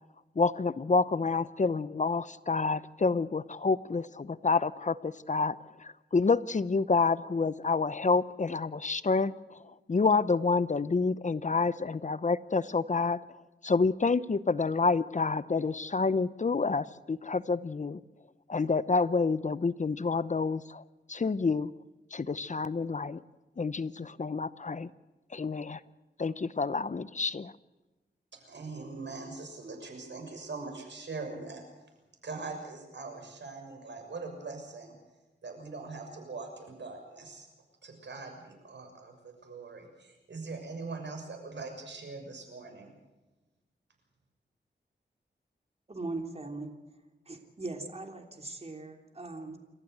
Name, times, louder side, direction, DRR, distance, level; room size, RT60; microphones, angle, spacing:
voice 1, 0.4-9.6 9.9-13.2 13.6-18.0 18.5-20.8 21.1-21.7 22.1-23.2 23.6-24.9 25.3-25.8 26.2-27.5, left 4 dB, 40° left, 16 dB, 0.8 m, -28 dB
voice 2, 28.3-31.6 32.2-34.9 35.4-37.5 37.8-42.9, right 3 dB, 75° right, 4 dB, 6.5 m, -42 dB
voice 3, 45.9-46.7 47.3-49.6, right 2 dB, 35° right, 4 dB, 3.2 m, -39 dB
28.5 x 14.5 x 8.0 m, 1.1 s
cardioid pair, 65°, 18 cm